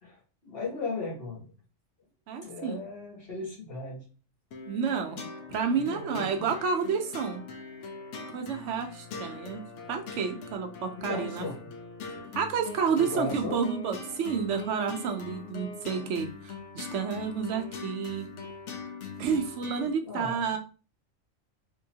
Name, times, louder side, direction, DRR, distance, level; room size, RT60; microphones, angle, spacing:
voice 1, 0.0-1.5 2.4-4.0 5.7-6.5 11.0-11.6 13.0-13.6 20.0-20.4, left 3 dB, 50° left, -3 dB, 1.6 m, -37 dB
voice 2, 2.3-2.8 4.7-5.2 5.5-7.4 8.3-11.5 12.3-18.3 19.2-20.6, right 6 dB, 70° right, 5 dB, 0.9 m, -30 dB
sound 1, 4.5-19.9, left 4 dB, 70° left, 1.0 m, -42 dB
3.7 x 3.0 x 2.7 m, 0.37 s
omnidirectional pair, 1.3 m